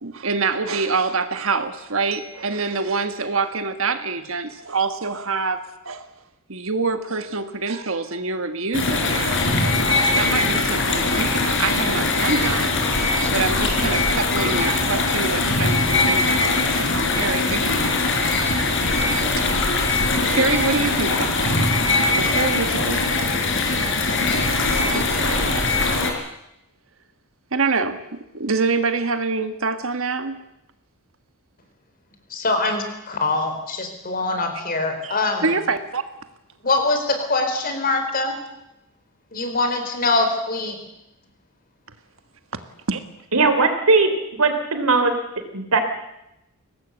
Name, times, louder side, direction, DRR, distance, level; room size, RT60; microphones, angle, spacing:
voice 1, 0.0-6.1 6.5-9.4 10.1-18.2 19.4-19.5 20.2-21.6 22.1-23.0 24.8-26.0 27.5-30.4 35.0-36.0 42.9-43.0, right 4 dB, 65° right, 9 dB, 1.6 m, -26 dB
sound 1, 8.7-26.1, left 3 dB, 60° left, 4.2 m, -21 dB
voice 2, 32.3-35.5 36.6-38.4 39.3-40.8, left 3 dB, 40° left, 6 dB, 4.2 m, -23 dB
voice 3, 43.3-45.8, right 3 dB, 85° right, 8 dB, 3.4 m, -19 dB
22.5 x 18.5 x 8.1 m, 0.87 s
head